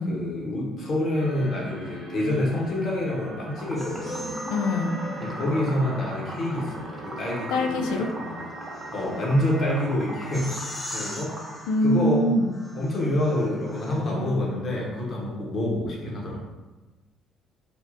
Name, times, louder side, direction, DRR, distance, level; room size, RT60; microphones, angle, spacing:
voice 1, 0.1-4.4 5.2-8.5 8.9-11.4 11.8-12.4 12.7-16.4, left 1 dB, 50° left, -3 dB, 0.9 m, -27 dB
sound 1, 1.1-11.7, right 1 dB, 70° right, 0.7 m, -39 dB
Liquid, 3.6-11.6, right 1 dB, 25° right, 0.6 m, -40 dB
sound 2, 3.8-5.7 7.2-14.4, left 1 dB, 25° left, 0.7 m, -43 dB
voice 2, 4.5-5.0 7.5-8.1 11.7-12.6, left 1 dB, 75° left, 3 dB, 0.3 m, -24 dB
3.5 x 2.1 x 2.5 m, 1.2 s
hypercardioid pair, 55°, 0 cm